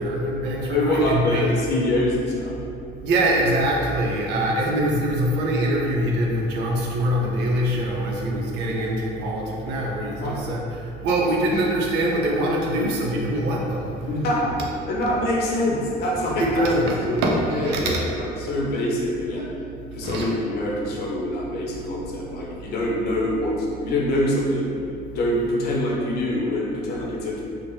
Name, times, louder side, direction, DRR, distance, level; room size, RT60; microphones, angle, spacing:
voice 1, 0.0-1.5 3.0-14.1 16.4-18.0 20.0-20.3, right 1 dB, 90° right, -2 dB, 0.5 m, -23 dB
voice 2, 0.7-2.6 4.6-4.7 10.2-10.4 14.1-14.6 14.9-16.7 17.1-19.4 19.9-23.5 23.8-24.7 25.1-27.4, left 1 dB, 70° left, -3 dB, 0.6 m, -25 dB
2.6 x 2.0 x 3.1 m, 2.7 s
cardioid pair, 110°, 17 cm